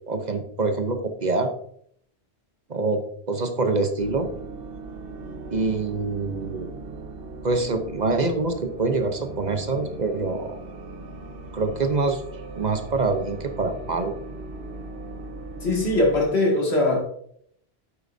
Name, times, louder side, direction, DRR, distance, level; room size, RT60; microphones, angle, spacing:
voice 1, 0.1-1.5 2.7-4.3 5.5-6.7 7.4-10.6 11.5-12.2 12.6-14.1, right 3 dB, 45° right, 7 dB, 0.9 m, -25 dB
sound 1, 4.0-16.3, right 3 dB, 65° right, 1.2 m, -39 dB
voice 2, 15.6-17.0, left 2 dB, 80° left, -1 dB, 2.4 m, -21 dB
8.8 x 7.7 x 2.6 m, 0.66 s
omnidirectional pair, 1.1 m